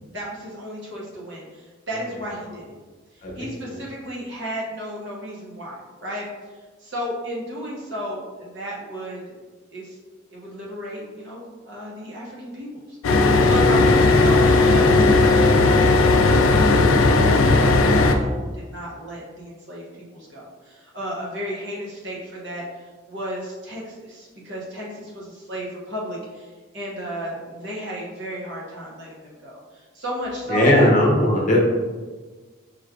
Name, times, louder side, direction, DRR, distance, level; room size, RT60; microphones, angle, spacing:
voice 1, 0.1-2.7 3.3-6.3 6.8-9.4 9.7-10.0 10.3-17.4 17.6-19.8 20.1-30.9 31.3-31.6, equal, 55° right, -4 dB, 1.0 m, -33 dB
sound 1, 13.0-18.2, left 3 dB, 75° left, 0.4 m, -16 dB
voice 2, 30.5-31.6, left 1 dB, 35° left, -2 dB, 0.7 m, -17 dB
5.0 x 3.1 x 2.4 m, 1.4 s
head